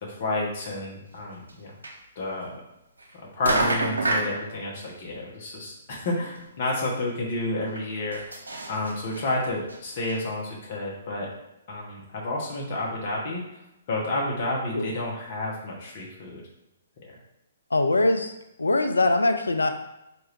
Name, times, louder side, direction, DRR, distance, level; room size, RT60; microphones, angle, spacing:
voice 1, 0.0-1.7 2.1-2.6 3.3-8.2 8.7-11.3 11.7-13.6 13.9-16.4 17.0-17.2, left 2 dB, 45° left, -3 dB, 1.1 m, -30 dB
sound 1, 1.5-1.6 1.8-1.9 3.0-3.1 3.4-4.3 5.9-6.0 6.3-6.4 6.7-6.8 7.8-9.2 9.7-9.8 10.1-10.2, right 2 dB, 80° right, 0.9 m, -27 dB
voice 2, 17.7-19.7, left 2 dB, 80° left, 7 dB, 0.4 m, -22 dB
4.4 x 2.5 x 3.3 m, 0.89 s
figure-of-eight pair, 125°, 0 cm